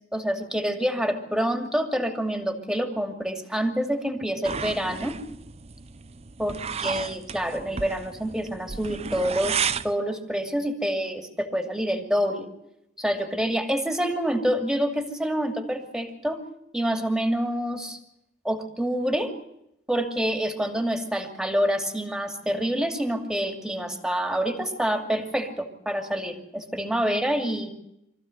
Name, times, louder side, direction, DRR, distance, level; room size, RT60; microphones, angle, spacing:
voice 1, 0.1-5.2 6.4-12.5 13.0-16.4 16.7-18.0 18.4-19.3 19.9-27.7, equal, 5° right, 6 dB, 2.5 m, -27 dB
sound 1, 4.4-9.9, right 6 dB, 35° right, 0.7 m, -33 dB
24.5 x 15.0 x 7.9 m, 0.82 s
head